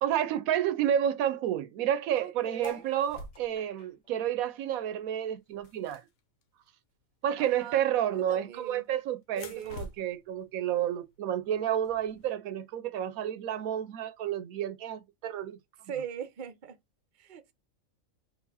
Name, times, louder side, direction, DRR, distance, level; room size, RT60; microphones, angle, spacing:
voice 1, 0.0-6.0 7.2-15.6, right 10 dB, 85° right, 1.0 m, -30 dB
voice 2, 2.1-2.8 7.4-7.8 8.1-8.8 9.4-9.9 15.9-16.8 17.2-17.5, right 8 dB, 45° right, 0.7 m, -40 dB
sound 1, 2.6-3.7 4.7-4.9 5.2-6.7 8.1-8.7 9.2-12.3, left 2 dB, 80° left, 1.2 m, -49 dB
sound 2, 2.6-5.3 5.7-7.2 7.7-7.8 7.9-8.0 8.2-8.6 9.4-9.5, right 1 dB, 30° left, 1.2 m, -51 dB
4.0 x 2.5 x 4.0 m
omnidirectional pair, 1.4 m